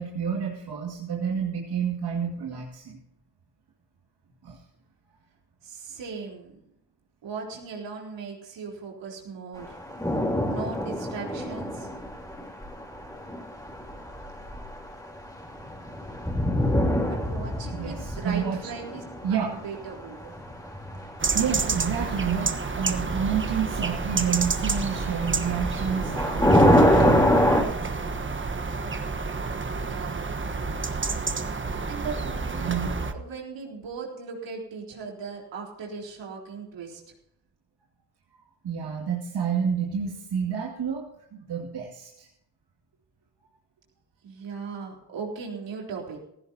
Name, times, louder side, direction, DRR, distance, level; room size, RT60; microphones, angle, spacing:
voice 1, 0.0-3.0 4.4-4.6 16.9-17.1 17.7-18.6 19.2-19.5 20.2-20.3 21.3-27.3 32.6-32.9 38.3-42.3, right 7 dB, 60° right, -2 dB, 2.4 m, -29 dB
voice 2, 5.6-6.6 7.2-9.8 10.4-11.9 17.1-19.0 19.3-20.2 29.6-30.3 31.6-32.8 33.1-37.0 44.2-46.3, right 5 dB, 75° right, -1 dB, 4.0 m, -38 dB
sound 1, 9.6-22.5 22.8-23.1 24.6-27.6, equal, 10° left, 3.5 m, -25 dB
sound 2, 21.2-33.1, right 4 dB, 25° right, 1.3 m, -29 dB
16.5 x 15.0 x 2.9 m, 0.78 s
supercardioid pair, 60°, 44 cm